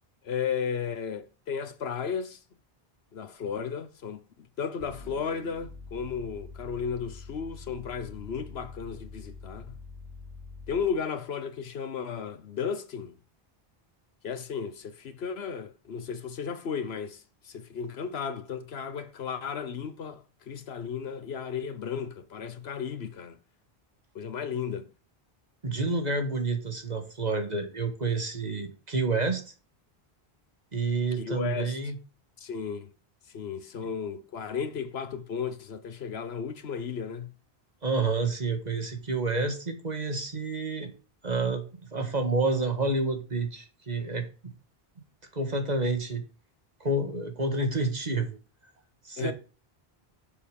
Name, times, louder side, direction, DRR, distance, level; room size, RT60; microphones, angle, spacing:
voice 1, 0.2-2.4 3.1-9.8 10.7-13.2 14.2-23.4 24.1-24.9 31.2-31.8 32.4-32.9 33.3-37.3 49.2-49.3, left 6 dB, 85° left, 1.2 m, -34 dB
sound 1, 4.8-11.0, left 3 dB, 85° right, 3.2 m, -45 dB
voice 2, 25.6-29.4 30.7-32.0 37.8-40.9 41.2-41.6 41.9-44.3 45.3-46.2 46.8-48.4 49.0-49.3, right 3 dB, 45° right, 1.9 m, -29 dB
7.3 x 6.9 x 5.4 m
omnidirectional pair, 1.0 m